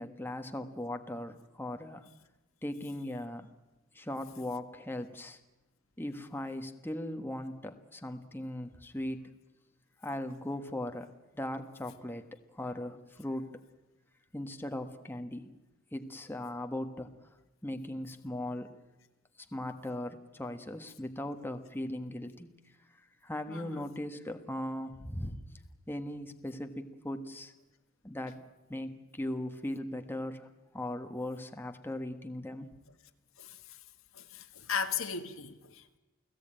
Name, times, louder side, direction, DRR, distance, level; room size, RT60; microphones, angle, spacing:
voice 1, 0.0-2.1 2.6-3.5 3.9-5.4 6.0-9.3 10.0-13.6 14.3-15.5 15.9-17.1 17.6-18.7 19.5-22.6 22.9-25.4 25.9-27.5 28.0-28.4 28.7-32.7, left 1 dB, 10° left, 1.3 m, -39 dB
voice 2, 23.5-23.9 33.4-33.8 34.1-36.0, left 6 dB, 75° left, 1.6 m, -37 dB
29.5 x 17.5 x 8.9 m
head